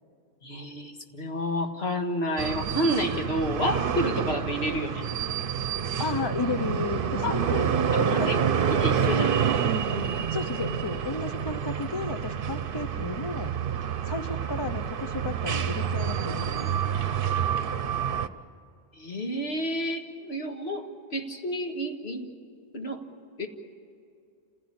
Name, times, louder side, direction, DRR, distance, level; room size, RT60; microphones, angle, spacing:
voice 1, 0.4-5.0 7.2-7.3 8.1-8.4 8.8-9.3 19.0-22.3 22.7-23.0 23.4-23.5, equal, 75° left, 3 dB, 2.0 m, -30 dB
sound 1, 2.4-18.3, right 7 dB, 60° right, 0.9 m, -28 dB
voice 2, 6.0-8.3 9.0-9.3 10.3-13.5 14.1-16.6, left 4 dB, 30° left, 12 dB, 0.6 m, -33 dB
28.0 x 16.5 x 8.8 m, 2.5 s
omnidirectional pair, 1.1 m